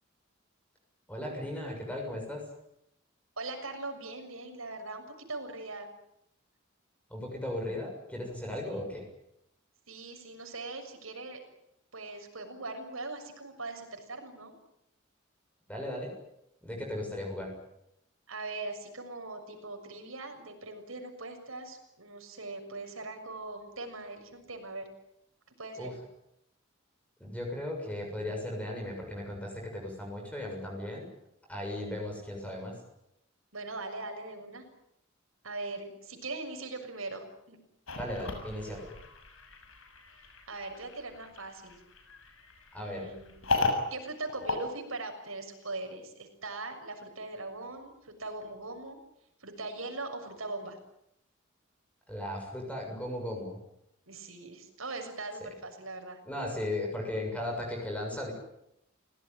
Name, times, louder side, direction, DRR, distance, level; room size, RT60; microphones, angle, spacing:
voice 1, 1.1-2.5 7.1-9.1 15.7-16.1 16.6-17.5 25.8-26.0 27.2-31.1 31.5-32.8 38.0-38.9 42.7-43.1 52.1-53.6 55.4-55.5 56.3-58.3, left 1 dB, 5° left, 1 dB, 7.0 m, -36 dB
voice 2, 3.4-5.9 8.7-8.9 9.9-11.4 11.9-14.5 18.3-24.9 25.6-25.9 33.5-34.6 35.4-37.6 40.5-41.8 42.8-43.3 43.9-49.0 49.4-50.8 54.1-56.2, right 2 dB, 90° right, 5 dB, 6.7 m, -41 dB
sound 1, 37.9-45.5, left 3 dB, 80° left, 6.5 m, -36 dB
29.5 x 18.5 x 9.4 m, 0.80 s
head